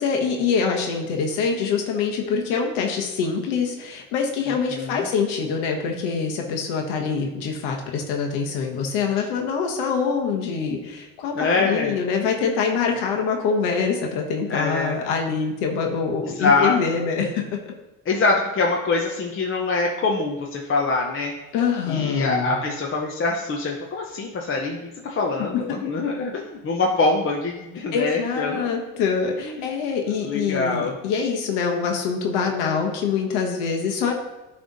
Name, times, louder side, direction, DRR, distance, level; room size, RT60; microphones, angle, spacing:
voice 1, 0.0-17.6 21.5-22.5 27.9-34.1, left 5 dB, 75° left, 2 dB, 1.2 m, -25 dB
voice 2, 4.5-5.1 11.3-11.9 14.5-15.0 16.2-16.8 18.1-21.3 21.9-28.8 29.4-29.6 30.2-30.9, left 3 dB, 30° left, -1 dB, 0.9 m, -24 dB
10.0 x 3.4 x 4.1 m, 1.1 s
supercardioid pair, 110°, 41 cm